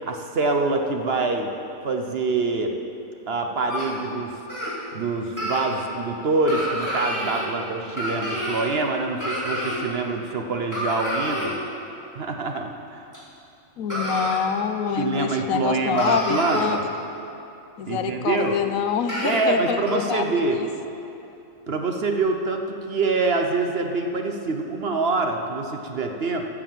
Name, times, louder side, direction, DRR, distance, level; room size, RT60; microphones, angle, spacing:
voice 1, 0.1-1.5 1.8-2.7 3.3-4.3 4.9-11.5 12.1-13.0 15.0-16.8 17.9-18.6 19.2-20.6 21.7-26.5, right 3 dB, 50° right, 4 dB, 1.0 m, -25 dB
sound 1, 3.7-3.9 4.5-4.7 5.4-5.6 6.5-7.4 8.0-8.7 9.2-9.8 10.7-11.5 13.1-13.2 13.9-14.4 15.1-15.2 15.6-15.7 16.0-16.7 18.4-18.5 19.1-19.4 19.9-20.0, equal, 10° right, 3.1 m, -28 dB
voice 2, 13.8-16.8 17.8-20.2 20.6-20.7, left 7 dB, 75° left, 9 dB, 1.1 m, -26 dB
13.0 x 7.6 x 7.6 m, 2.8 s
omnidirectional pair, 1.5 m